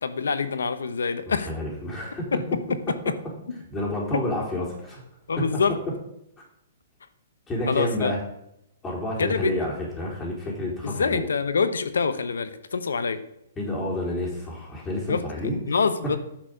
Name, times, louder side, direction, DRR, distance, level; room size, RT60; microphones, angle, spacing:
voice 1, 0.0-1.5 5.3-5.7 7.7-8.1 9.2-9.5 10.8-13.2 15.1-15.2 15.6-16.2, left 5 dB, 80° left, 11 dB, 1.0 m, -25 dB
voice 2, 1.3-2.2 3.7-5.0 5.4-5.5 7.5-8.2 8.8-11.3 13.6-15.6, left 1 dB, 15° left, -3 dB, 4.3 m, -29 dB
10.5 x 6.4 x 5.4 m, 0.80 s
hypercardioid pair, 130°, 0 cm